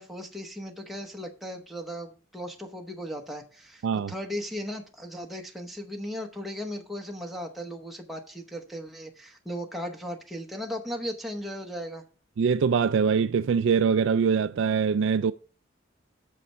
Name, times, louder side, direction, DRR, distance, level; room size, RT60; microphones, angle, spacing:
voice 1, 0.0-12.0, equal, ahead, 0.9 m, -37 dB
voice 2, 12.4-15.3, right 6 dB, 65° right, 0.3 m, -23 dB
8.3 x 6.5 x 4.5 m
head